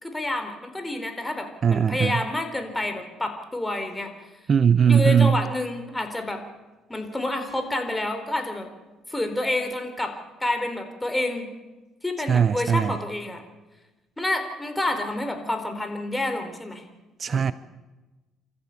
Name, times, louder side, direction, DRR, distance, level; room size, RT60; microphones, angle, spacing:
voice 1, 0.0-4.1 4.9-6.4 6.9-8.7 9.1-11.5 12.0-13.4 14.2-16.8 17.3-17.5, left 1 dB, 10° left, 6 dB, 4.0 m, -28 dB
voice 2, 1.6-2.2 4.5-5.4 12.3-13.0 17.2-17.5, right 7 dB, 45° right, 16 dB, 0.6 m, -19 dB
27.0 x 14.0 x 8.4 m, 1.2 s
cardioid pair, 85°, 0 cm